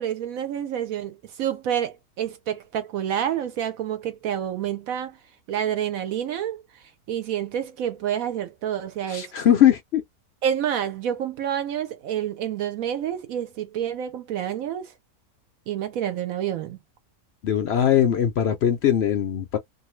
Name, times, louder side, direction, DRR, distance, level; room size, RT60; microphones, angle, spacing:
voice 1, 0.0-5.2 5.5-9.3 10.4-14.9 15.7-16.8, right 10 dB, 70° right, 1.0 m, -28 dB
voice 2, 9.1-10.0 17.4-19.6, left 10 dB, 70° left, 0.6 m, -20 dB
2.6 x 2.6 x 3.0 m
omnidirectional pair, 1.6 m